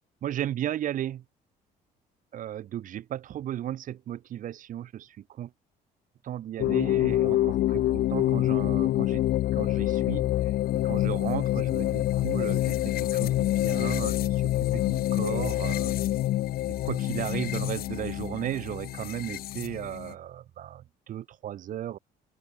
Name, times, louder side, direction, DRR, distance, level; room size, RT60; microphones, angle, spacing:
voice 1, 0.2-1.2 2.3-5.5 6.3-9.2 9.5-10.5 10.8-15.9 16.7-22.0, right 11 dB, 50° right, 0.7 m, -35 dB
sound 1, 6.6-20.1, left 14 dB, 60° left, 0.6 m, -26 dB
open air
cardioid pair, 110°, 17 cm